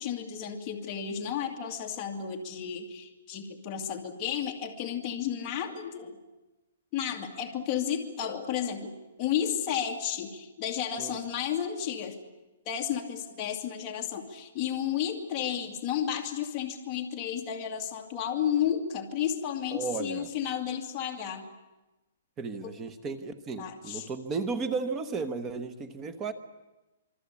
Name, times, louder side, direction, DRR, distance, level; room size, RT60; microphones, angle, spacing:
voice 1, 0.0-6.2 6.9-8.9 9.2-12.2 12.7-21.5 22.6-22.8 23.6-24.1, left 9 dB, 20° left, 1 dB, 2.4 m, -32 dB
voice 2, 19.7-20.3 22.4-26.3, right 4 dB, 15° right, 10 dB, 1.1 m, -34 dB
26.5 x 24.5 x 8.5 m, 1.0 s
hypercardioid pair, 180°, 0 cm